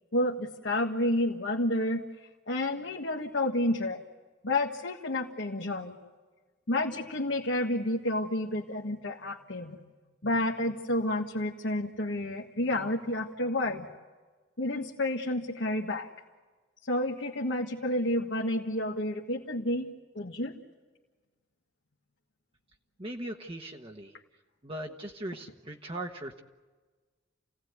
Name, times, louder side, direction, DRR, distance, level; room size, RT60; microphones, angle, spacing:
voice 1, 0.1-2.0 2.5-4.0 4.4-6.0 6.7-9.8 10.2-13.9 14.6-16.1 16.9-19.9 20.1-20.5, left 1 dB, 70° left, -1 dB, 1.7 m, -30 dB
voice 2, 23.0-24.2 24.6-26.4, right 1 dB, 30° right, 1 dB, 1.3 m, -39 dB
29.5 x 17.5 x 9.5 m, 1.4 s
head